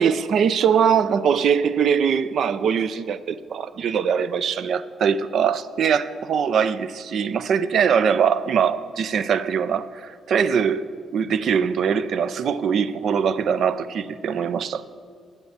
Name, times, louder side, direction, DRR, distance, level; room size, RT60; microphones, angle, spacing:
voice 1, 0.0-10.8 11.1-14.8, right 7 dB, 60° right, 0.4 m, -22 dB
9.4 x 8.0 x 7.2 m
cardioid pair, 145°, 0 cm